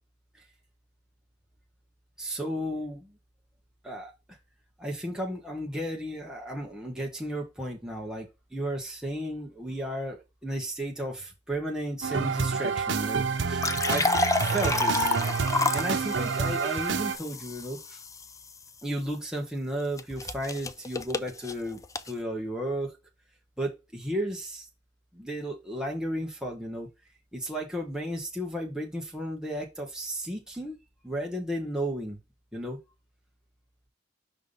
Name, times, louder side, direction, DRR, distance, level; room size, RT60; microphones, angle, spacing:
voice 1, 2.2-3.1 3.8-4.4 4.8-14.1 14.4-15.1 15.7-18.0 18.8-22.9 23.6-24.7 25.1-26.9 27.3-30.8 31.0-32.2 32.5-32.8, right 1 dB, 5° right, 1.3 m, -34 dB
sound 1, 12.0-17.2, right 5 dB, 85° right, 0.7 m, -28 dB
sound 2, 13.4-18.5 20.0-22.1, left 3 dB, 20° left, 0.4 m, -30 dB
5.6 x 3.5 x 5.4 m
head